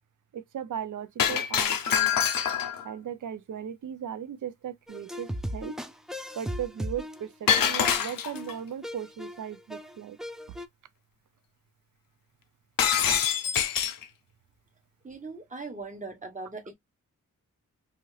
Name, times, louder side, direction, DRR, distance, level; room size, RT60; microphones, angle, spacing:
voice 1, 0.3-2.1 2.8-5.8 6.4-10.2, right 9 dB, 65° right, 0.5 m, -37 dB
Shatter, 1.2-2.9 7.5-8.5 12.8-14.0, left 9 dB, 75° left, 0.6 m, -25 dB
sound 1, 4.9-10.7, equal, ahead, 0.3 m, -37 dB
voice 2, 15.0-16.7, right 3 dB, 25° right, 1.0 m, -39 dB
2.7 x 2.2 x 3.2 m
wide cardioid pair, 85°, 33 cm